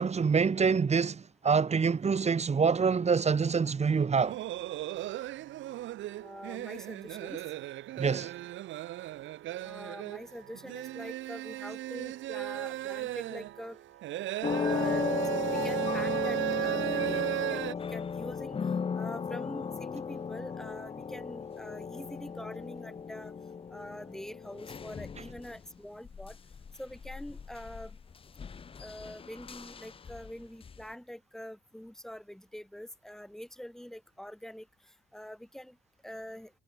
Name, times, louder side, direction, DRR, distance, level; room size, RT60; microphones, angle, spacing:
voice 1, 0.0-4.4 8.0-8.3, right 5 dB, 35° right, 1.5 m, -26 dB
sound 1, 4.1-17.7, right 15 dB, 75° right, 0.6 m, -35 dB
voice 2, 6.2-7.4 9.6-13.8 14.5-15.1 15.6-17.6 17.9-18.6 19.0-23.3 23.7-26.4 26.8-28.0 28.8-34.7 35.1-35.8 36.0-36.5, equal, ahead, 3.7 m, -44 dB
sound 2, 14.4-25.8 26.0-30.8, left 6 dB, 30° left, 0.5 m, -36 dB
cardioid pair, 90°, 20 cm